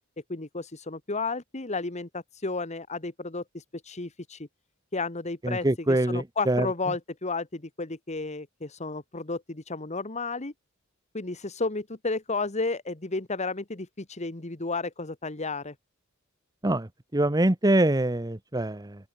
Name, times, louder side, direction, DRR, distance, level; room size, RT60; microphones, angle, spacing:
voice 1, 0.3-4.5 4.9-10.5 11.1-15.7, left 3 dB, 35° left, 1.6 m, -32 dB
voice 2, 5.4-6.7 16.6-16.9 17.1-18.9, right 1 dB, 20° right, 1.2 m, -24 dB
open air
head